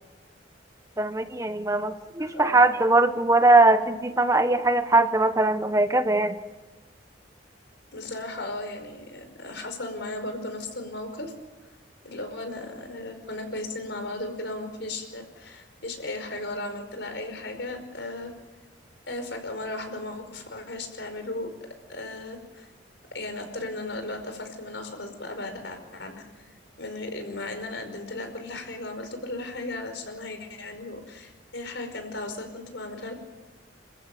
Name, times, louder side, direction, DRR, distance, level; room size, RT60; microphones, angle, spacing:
voice 1, 1.0-6.4, right 2 dB, 15° right, 9 dB, 1.0 m, -21 dB
voice 2, 2.2-2.6 7.9-11.3 12.0-18.3 19.1-21.5 21.9-22.7 23.1-26.2 26.8-33.1, left 2 dB, 65° left, 6 dB, 5.1 m, -36 dB
29.0 x 14.5 x 9.1 m, 1.2 s
head